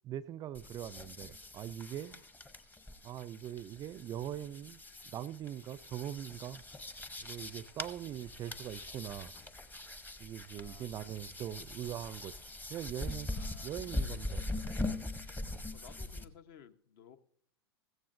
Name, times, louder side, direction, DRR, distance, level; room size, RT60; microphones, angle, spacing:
voice 1, 0.0-2.2 3.0-6.6 7.2-9.3 10.2-12.4 12.7-13.3 13.6-14.4, right 11 dB, 30° right, 0.4 m, -42 dB
sound 1, 0.5-16.3, left 2 dB, 15° left, 0.8 m, -42 dB
sound 2, 2.8-13.1, left 9 dB, 40° left, 4.9 m, -71 dB
voice 2, 10.5-10.9 13.3-14.3 15.7-17.2, left 8 dB, 55° left, 0.9 m, -57 dB
15.5 x 14.5 x 2.6 m
hypercardioid pair, 100°, 14 cm